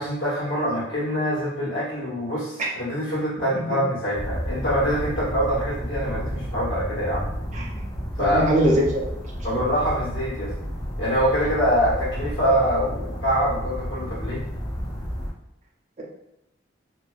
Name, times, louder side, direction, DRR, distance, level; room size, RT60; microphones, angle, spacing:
voice 1, 0.0-7.3 8.2-8.5 9.4-10.5 11.0-14.4, equal, 80° left, -7 dB, 1.2 m, -24 dB
sound 1, 4.1-15.3, equal, 20° left, 0.3 m, -32 dB
voice 2, 7.5-7.8 8.2-9.5, right 1 dB, 35° right, -2 dB, 0.5 m, -23 dB
2.5 x 2.2 x 2.3 m, 0.82 s
head